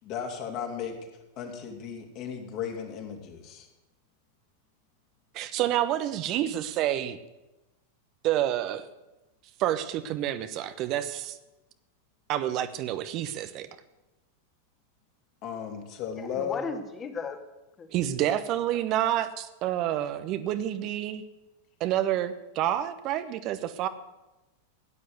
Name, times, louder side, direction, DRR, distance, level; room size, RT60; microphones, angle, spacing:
voice 1, 0.0-1.0 1.4-3.7 15.4-16.7, left 7 dB, 40° left, 3 dB, 3.2 m, -35 dB
voice 2, 5.3-7.2 8.2-8.9 9.6-11.4 12.3-13.7 17.9-21.2 21.8-23.9, right 12 dB, 40° right, 11 dB, 1.0 m, -28 dB
voice 3, 16.2-17.4 17.8-18.2 18.7-18.8, left 5 dB, 25° left, 7 dB, 2.1 m, -36 dB
16.5 x 9.9 x 8.1 m, 1.0 s
figure-of-eight pair, 90°, 0 cm